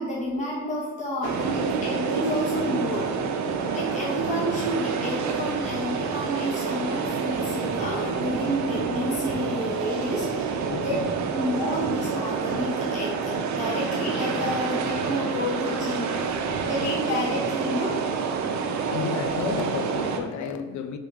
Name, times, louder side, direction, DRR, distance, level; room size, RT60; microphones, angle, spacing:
voice 1, 0.0-3.1 3.7-10.6 10.8-11.0 11.3-16.1 16.6-18.0, equal, 25° left, 1.2 m, -30 dB
sound 1, 1.2-20.2, right 5 dB, 65° right, 0.6 m, -28 dB
voice 2, 10.7-11.1 16.5-16.7 18.9-21.0, left 7 dB, 70° left, 0.5 m, -32 dB
4.0 x 3.5 x 3.5 m
cardioid pair, 90°, 30 cm